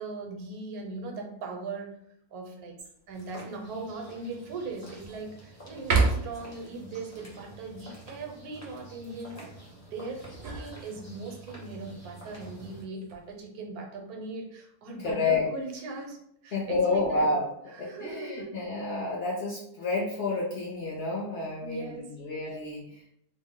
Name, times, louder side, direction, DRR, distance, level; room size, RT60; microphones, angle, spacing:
voice 1, 0.0-2.0 2.3-2.8 3.1-16.2 16.4-17.3 17.8-18.5 21.6-22.1, right 3 dB, 80° right, 2 dB, 1.1 m, -39 dB
sound 1, 2.8-3.2 3.8-3.9 4.4-5.3 5.8-6.5 10.0-11.4 12.8-13.3, right 4 dB, 65° right, 0.6 m, -30 dB
sound 2, 3.1-12.8, right 1 dB, 15° left, 0.7 m, -48 dB
voice 2, 15.0-15.5 16.5-17.5 17.8-23.1, left 3 dB, 60° left, -5 dB, 0.6 m, -29 dB
2.5 x 2.0 x 3.6 m, 0.75 s
omnidirectional pair, 1.6 m